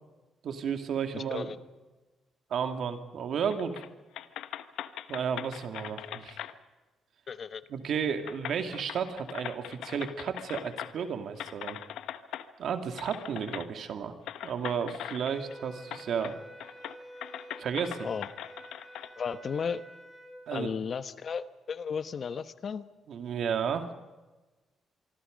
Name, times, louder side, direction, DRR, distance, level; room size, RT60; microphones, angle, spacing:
voice 1, 0.4-1.5 2.5-3.8 5.1-6.4 7.7-11.8 12.6-14.1 14.4-16.3 17.6-18.1 20.5-20.7 23.1-23.9, right 7 dB, 65° right, 7 dB, 2.5 m, -33 dB
voice 2, 1.1-1.6 7.3-7.6 18.0-18.3 19.2-19.8 20.5-22.9, left 6 dB, 50° left, 13 dB, 1.1 m, -34 dB
sound 1, 3.5-3.9 4.1-6.5 7.7-7.8 8.2-11.1 11.4-12.5 13.0-13.7 14.3-15.5 15.9-16.4 16.6-19.1, left 11 dB, 85° left, 1.0 m, -41 dB
sound 2, 15.2-20.4, right 1 dB, ahead, 4.9 m, -49 dB
25.0 x 25.0 x 5.3 m, 1.2 s
cardioid pair, 90°, 0 cm